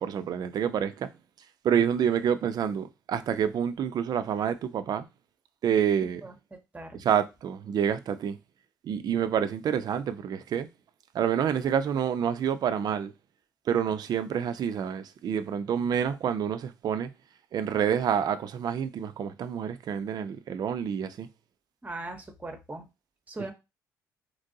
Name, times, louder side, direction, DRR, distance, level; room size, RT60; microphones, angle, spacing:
voice 1, 0.0-1.1 1.6-5.1 5.6-6.2 6.9-8.4 8.8-10.7 11.1-13.1 13.7-17.1 17.5-21.3, right 8 dB, 55° right, 0.4 m, -28 dB
voice 2, 21.8-22.9 23.3-23.5, right 2 dB, 20° right, 0.8 m, -39 dB
2.9 x 2.6 x 2.6 m
supercardioid pair, 60°, 8 cm